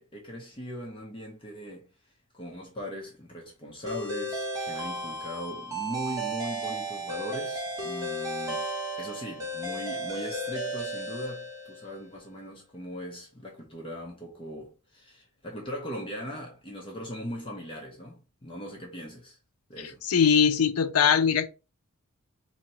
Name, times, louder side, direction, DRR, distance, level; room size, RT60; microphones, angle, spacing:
voice 1, 0.0-1.9 2.3-19.4 19.7-20.0, equal, 25° left, 0.8 m, -39 dB
sound 1, 3.9-12.0, right 1 dB, 15° right, 1.1 m, -34 dB
voice 2, 20.0-21.5, left 7 dB, 75° left, 0.5 m, -21 dB
2.8 x 2.8 x 4.1 m
head